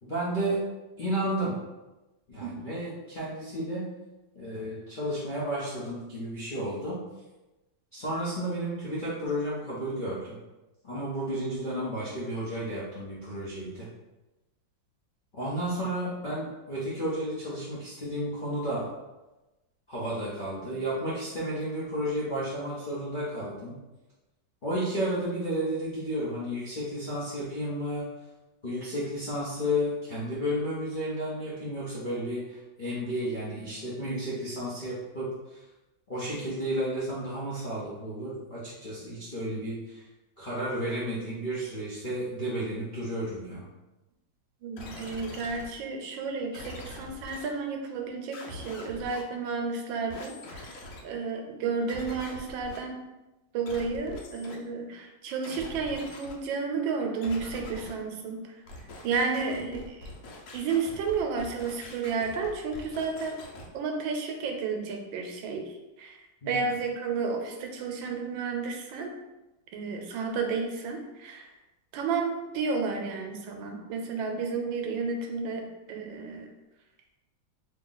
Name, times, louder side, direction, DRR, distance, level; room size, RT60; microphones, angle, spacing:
voice 1, 0.0-0.6 1.0-1.5 2.3-3.8 4.3-7.0 7.9-10.4 10.8-13.9 15.3-18.9 19.9-23.8 24.6-28.1 28.6-35.6 36.1-40.1 40.4-43.6 66.4-66.6, equal, 55° left, -9 dB, 0.5 m, -32 dB
voice 2, 44.6-50.7 51.0-53.0 53.5-58.4 59.0-60.1 60.5-63.4 63.7-65.6 66.0-66.2 66.5-69.1 69.7-71.5 71.9-75.6 75.9-76.4, right 4 dB, 85° right, 3 dB, 1.3 m, -32 dB
sound 1, 44.8-45.7 46.5-47.4 48.3-49.2 50.1-51.0 51.9-52.8 53.7-54.6 55.4-56.3 57.2-57.9 58.7-63.7, left 1 dB, 75° left, 1.4 m, -44 dB
3.0 x 2.8 x 3.8 m, 1.0 s
omnidirectional pair, 2.1 m